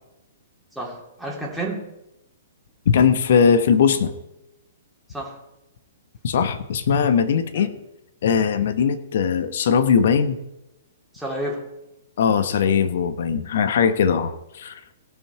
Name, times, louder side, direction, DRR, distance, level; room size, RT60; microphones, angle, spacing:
voice 1, 0.7-1.9 5.1-5.4 7.5-7.7 11.1-11.6, right 1 dB, ahead, -4 dB, 3.0 m, -30 dB
voice 2, 2.9-4.1 6.2-7.7 8.2-10.4 12.2-14.8, left 7 dB, 60° left, 10 dB, 1.1 m, -20 dB
17.5 x 6.0 x 4.7 m, 0.91 s
figure-of-eight pair, 120°, 0 cm